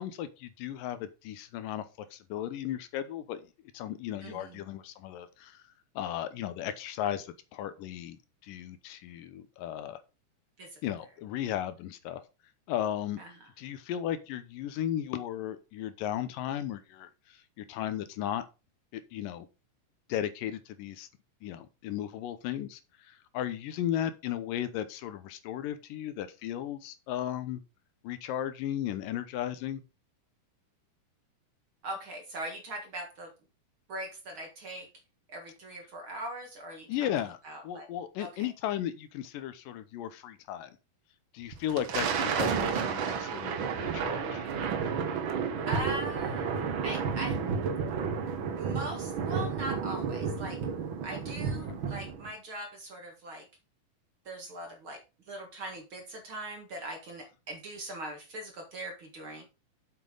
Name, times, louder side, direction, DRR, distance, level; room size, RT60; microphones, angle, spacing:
voice 1, 0.0-1.9 2.1-3.5 3.7-5.6 6.0-10.0 10.8-12.2 12.7-13.2 13.6-18.4 18.9-19.5 20.1-21.1 21.4-27.6 28.0-29.8 36.9-37.4 37.6-40.8 41.3-42.5 42.8-44.5, left 11 dB, 80° left, 2.4 m, -35 dB
voice 2, 4.2-4.7 10.6-10.8 13.2-13.3 31.8-33.3 33.9-34.9 35.3-37.1 37.4-37.9 38.2-38.5 45.7-46.5 46.8-47.4 48.6-50.6 51.0-53.5 54.3-55.0 55.3-59.4, right 1 dB, 45° right, 2.0 m, -40 dB
Thunder, 41.5-52.3, right 6 dB, 90° right, 1.1 m, -31 dB
7.8 x 7.4 x 3.8 m
omnidirectional pair, 3.9 m